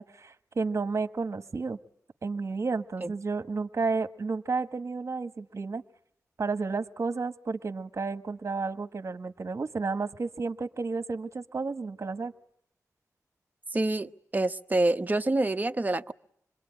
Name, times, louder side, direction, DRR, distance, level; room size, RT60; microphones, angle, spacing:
voice 1, 0.0-1.8 2.2-5.8 6.4-12.3, right 4 dB, 55° right, 1.3 m, -32 dB
voice 2, 13.7-16.1, right 2 dB, 30° right, 1.0 m, -27 dB
26.5 x 22.0 x 9.0 m
cardioid pair, 60°, 6 cm